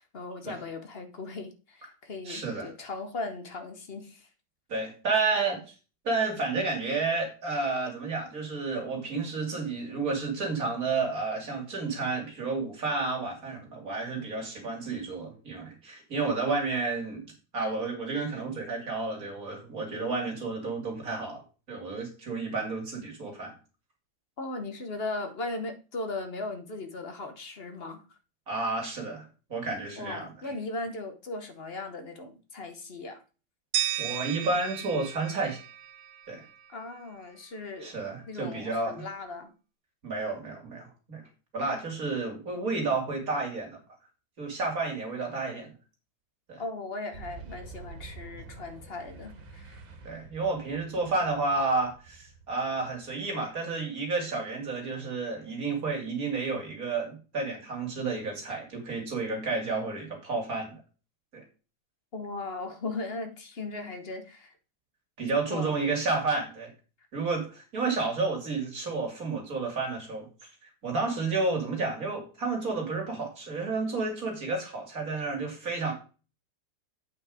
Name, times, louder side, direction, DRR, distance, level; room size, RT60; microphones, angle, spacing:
voice 1, 0.0-4.3 24.4-28.0 30.0-33.2 36.7-37.9 38.3-39.5 46.6-49.8 62.1-64.5 65.5-65.8, left 2 dB, 40° left, 1.0 m, -38 dB
voice 2, 2.2-2.7 4.7-5.6 6.0-17.2 17.5-21.4 21.7-23.5 28.5-30.5 34.0-35.6 36.3-36.4 37.8-39.0 40.0-41.2 41.5-43.8 44.4-45.7 46.5-46.6 50.0-60.8 61.3-61.4 65.2-66.7 67.1-75.9, right 3 dB, 50° right, 3.0 m, -31 dB
sound 1, 33.7-36.7, right 12 dB, 65° right, 1.4 m, -34 dB
Boom, 47.1-53.7, right 3 dB, 85° right, 2.4 m, -48 dB
8.6 x 5.3 x 4.9 m
omnidirectional pair, 2.0 m